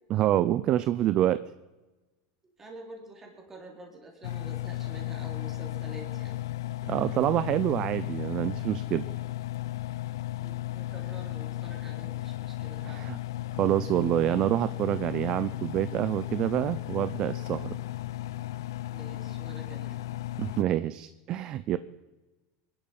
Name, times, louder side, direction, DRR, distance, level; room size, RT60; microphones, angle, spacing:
voice 1, 0.1-1.4 6.8-9.1 12.8-13.2 13.6-17.8 20.4-21.8, right 13 dB, 40° right, 15 dB, 0.6 m, -27 dB
voice 2, 2.4-6.4 10.4-13.1 18.9-20.0, right 2 dB, 15° right, 0 dB, 3.6 m, -47 dB
Engine, 4.2-20.6, left 15 dB, 85° left, 0.5 m, -35 dB
21.5 x 11.5 x 5.6 m, 1.1 s
supercardioid pair, 130°, 2 cm